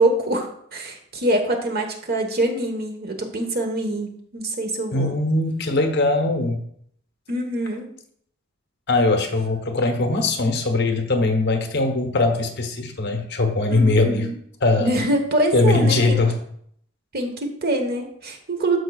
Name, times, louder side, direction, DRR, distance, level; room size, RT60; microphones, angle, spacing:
voice 1, 0.0-5.1 7.3-7.9 13.7-14.4 14.8-16.2 17.1-18.8, right 1 dB, 50° right, 4 dB, 1.2 m, -24 dB
voice 2, 4.9-6.6 8.9-14.3 14.6-14.9 15.5-16.4, left 2 dB, 60° left, 5 dB, 1.1 m, -20 dB
13.0 x 4.9 x 2.4 m, 0.66 s
head